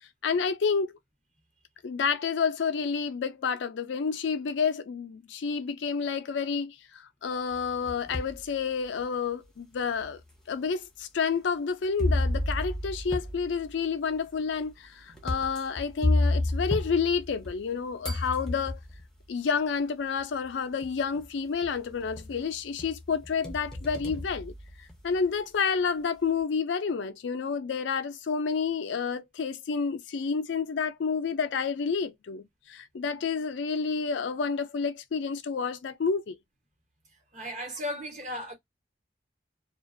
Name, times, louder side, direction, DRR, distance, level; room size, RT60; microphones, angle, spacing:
voice 1, 0.2-0.9 1.8-10.2 10.5-18.8 19.3-24.5 24.8-36.4, left 5 dB, 80° left, 0.4 m, -29 dB
sound 1, 7.5-8.4 9.0-9.1 10.0-10.1 12.0-17.7 18.0-19.0 20.2-20.3 20.8-21.2 21.6-22.4 22.8-25.2, left 2 dB, 5° left, 0.6 m, -31 dB
voice 2, 37.3-38.5, left 1 dB, 40° right, 1.1 m, -35 dB
2.4 x 2.2 x 2.5 m
head